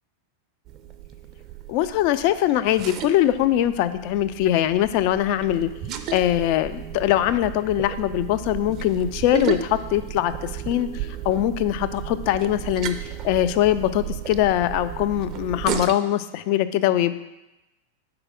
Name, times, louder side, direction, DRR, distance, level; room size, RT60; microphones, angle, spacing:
sound 1, 0.7-15.9, right 9 dB, 35° right, 0.5 m, -34 dB
voice 1, 1.7-5.7 6.1-10.9 11.3-17.1, left 12 dB, 45° left, 12 dB, 0.3 m, -22 dB
4.8 x 4.7 x 6.1 m, 0.98 s
figure-of-eight pair, 90°, 0 cm